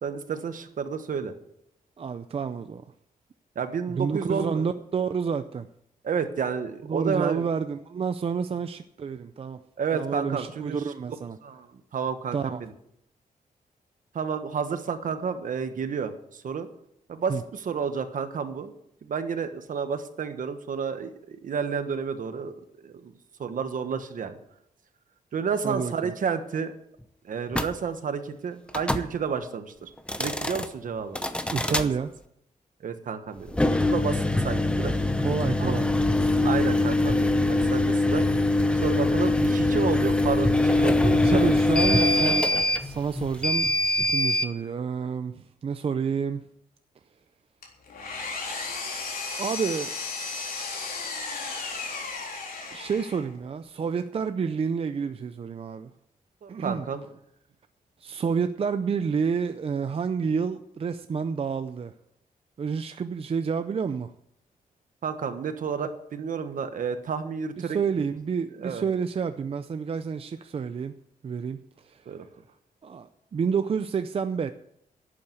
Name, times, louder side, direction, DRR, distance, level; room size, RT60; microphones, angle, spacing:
voice 1, 0.0-1.3 3.5-4.7 6.0-7.4 9.8-10.8 11.4-11.7 11.9-12.7 14.1-16.7 17.1-18.7 19.0-22.5 22.8-23.1 23.4-24.4 25.3-26.7 27.2-29.9 30.2-31.2 31.7-31.9 32.8-35.0 35.6-35.7 36.4-38.3 38.7-41.6 56.4-57.1 65.0-67.8 68.6-68.8 72.1-72.3, right 6 dB, 65° right, 1.3 m, -30 dB
voice 2, 2.0-2.8 4.0-5.7 6.9-9.6 9.9-11.4 12.3-12.6 17.3-17.4 25.6-26.1 31.5-32.1 35.2-35.9 41.1-42.5 42.8-43.7 44.0-46.4 49.4-49.9 52.7-55.9 56.5-56.9 58.0-61.9 62.6-64.1 67.6-72.0 72.8-74.5, right 6 dB, 40° right, 0.5 m, -29 dB
sound 1, 27.5-27.7 28.7-29.1 30.0-30.7 31.1-31.9 33.5-44.5, left 2 dB, 5° left, 0.8 m, -23 dB
Engine, 47.6-53.3, left 4 dB, 85° left, 3.8 m, -34 dB
11.5 x 8.7 x 7.9 m
wide cardioid pair, 160°, 15 cm